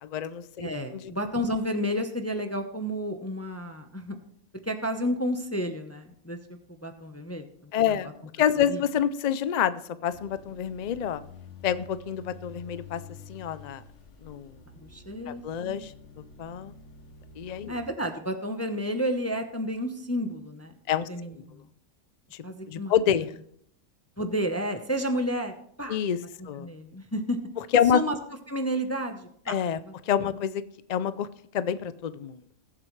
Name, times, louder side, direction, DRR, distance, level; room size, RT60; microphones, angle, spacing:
voice 1, 0.0-1.1 7.7-8.1 8.4-11.2 11.6-13.0 13.3-13.8 14.2-14.5 15.3-15.9 16.4-16.7 17.4-17.8 20.9-21.1 22.7-23.3 25.9-26.2 26.5-26.7 27.7-28.0 29.5-29.8 30.1-30.6 30.9-31.3 31.5-32.4, left 9 dB, 85° left, 14 dB, 0.3 m, -27 dB
voice 2, 0.6-4.2 4.6-6.4 6.7-8.0 8.7-8.8 14.7-15.8 17.7-20.7 21.1-21.6 22.4-22.9 24.2-26.0 26.4-27.4 27.9-28.2 28.5-29.5 29.8-29.9, equal, 15° left, 6 dB, 0.7 m, -31 dB
sound 1, 10.1-17.9, left 4 dB, 65° left, 1.4 m, -49 dB
20.5 x 7.5 x 3.2 m, 0.67 s
omnidirectional pair, 1.4 m